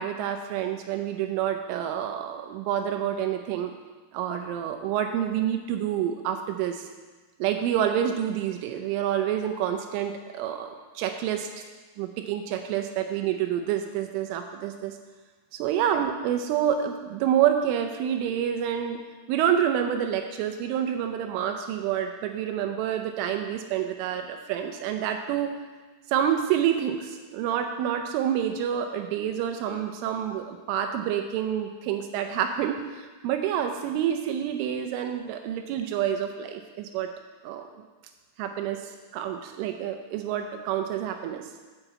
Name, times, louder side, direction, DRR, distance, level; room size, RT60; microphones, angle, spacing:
voice 1, 0.0-3.7 4.1-6.9 7.4-11.5 12.0-15.0 15.5-19.0 19.3-25.5 26.1-37.1 37.4-37.7 38.4-41.4, right 9 dB, 80° right, 6 dB, 3.1 m, -28 dB
7.4 x 6.8 x 8.0 m, 1.3 s
omnidirectional pair, 5.8 m